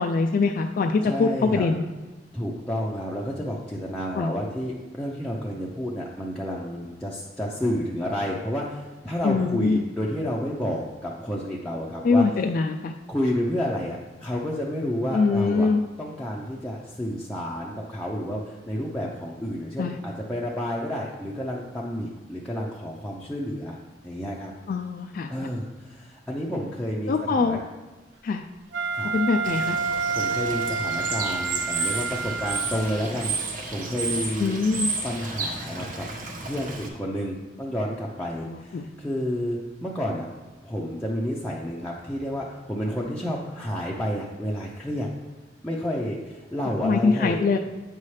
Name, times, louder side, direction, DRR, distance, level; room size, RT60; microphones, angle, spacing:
voice 1, 0.0-1.8 4.1-4.3 9.2-9.8 12.0-12.9 15.1-15.8 19.8-20.0 24.7-25.3 27.1-27.6 28.2-28.5 29.1-29.8 34.4-34.9 38.4-38.9 46.8-47.6, left 4 dB, 50° left, 5 dB, 0.3 m, -23 dB
voice 2, 1.0-1.7 2.3-12.3 13.1-15.7 16.0-23.8 24.0-24.5 25.3-27.6 28.9-29.1 30.1-34.5 35.0-36.1 36.4-40.2 40.6-45.1 45.6-47.4, equal, 5° left, -5 dB, 0.6 m, -30 dB
Wind instrument woodwind instrument, 28.7-33.0, right 5 dB, 80° right, 0.5 m, -28 dB
Bird / Water, 29.4-36.9, right 3 dB, 50° right, 1.0 m, -32 dB
8.5 x 5.6 x 3.2 m, 1.2 s
head